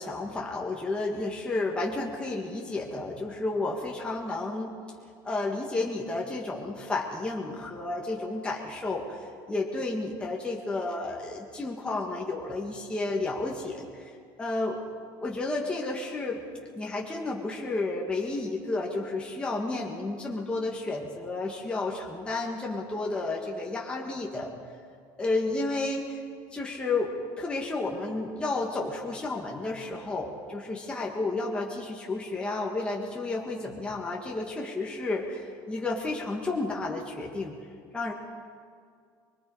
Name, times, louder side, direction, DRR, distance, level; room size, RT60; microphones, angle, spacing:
voice 1, 0.0-4.8 5.2-9.2 9.5-14.1 14.4-14.8 15.2-16.4 16.8-24.5 25.2-26.2 26.5-37.6 37.9-38.1, left 2 dB, 10° left, -2 dB, 1.8 m, -31 dB
24.0 x 22.5 x 5.0 m, 2.2 s
cardioid pair, 155°, 10 cm